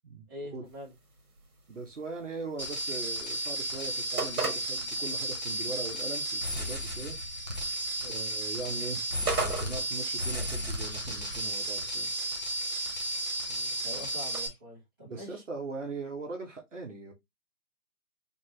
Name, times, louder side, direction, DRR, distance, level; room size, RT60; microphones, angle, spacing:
voice 1, 0.3-0.9 8.0-8.2 13.4-15.4, left 1 dB, 15° right, 1.3 m, -44 dB
sound 1, 0.6-14.4, right 3 dB, 65° right, 1.6 m, -41 dB
voice 2, 1.7-7.2 8.1-9.0 9.3-12.1 15.0-17.1, right 3 dB, 50° right, 1.3 m, -40 dB
sound 2, 2.6-14.5, right 1 dB, 30° left, 0.7 m, -33 dB
4.1 x 3.0 x 3.1 m
hypercardioid pair, 175°, 46 cm